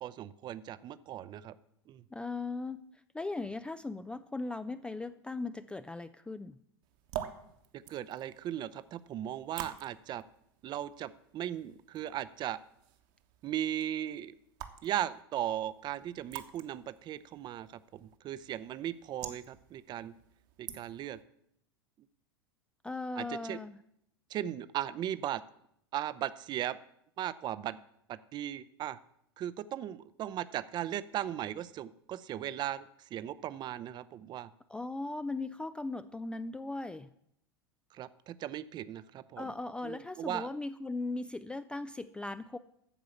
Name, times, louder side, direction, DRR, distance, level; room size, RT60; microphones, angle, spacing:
voice 1, 0.0-1.5 1.9-2.0 7.9-10.2 10.6-12.6 13.4-14.3 14.8-17.7 17.9-20.1 20.6-21.2 23.2-23.6 24.3-25.4 25.9-26.8 27.2-27.8 28.1-29.0 29.4-34.5 37.9-39.5 39.8-40.5, right 11 dB, 30° right, 15 dB, 0.6 m, -37 dB
voice 2, 2.1-2.8 3.1-6.6 22.8-23.8 34.7-37.1 39.4-42.6, left 3 dB, 5° left, 12 dB, 0.3 m, -38 dB
sound 1, 6.8-21.2, right 11 dB, 50° right, 1.2 m, -48 dB
14.0 x 4.8 x 7.1 m, 0.75 s
figure-of-eight pair, 85°, 14 cm